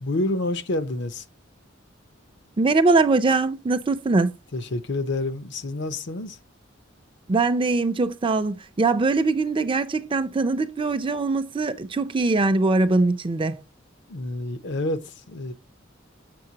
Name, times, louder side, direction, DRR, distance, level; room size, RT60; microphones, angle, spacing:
voice 1, 0.0-1.2 4.5-6.4 14.1-15.5, left 2 dB, 60° left, 0.7 m, -28 dB
voice 2, 2.6-4.3 7.3-13.5, right 3 dB, 25° right, 0.5 m, -22 dB
7.7 x 6.5 x 2.8 m
head